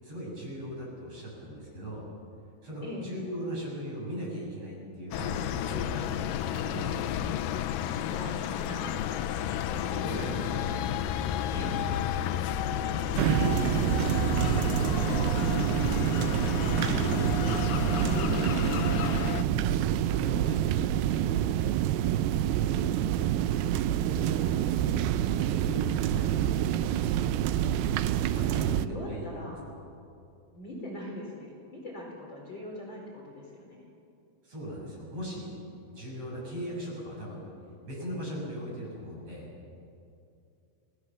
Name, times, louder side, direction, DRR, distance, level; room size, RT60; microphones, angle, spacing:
voice 1, 0.0-2.0 2.6-7.0 9.9-10.9 12.6-15.3 16.8-19.3 19.6-21.8 23.5-24.7 25.1-26.9 28.3-29.5 34.4-37.4 37.8-39.5, equal, 40° right, -3 dB, 7.4 m, -39 dB
sound 1, 5.1-19.4, left 10 dB, 75° left, 2.3 m, -31 dB
voice 2, 8.0-8.9 11.5-11.9 16.0-16.3 22.6-22.9 28.3-29.6 30.5-33.9, left 1 dB, 30° left, -2 dB, 4.6 m, -41 dB
sound 2, 13.2-28.9, right 11 dB, 85° right, 2.6 m, -27 dB
29.0 x 19.0 x 7.3 m, 2.6 s
omnidirectional pair, 4.3 m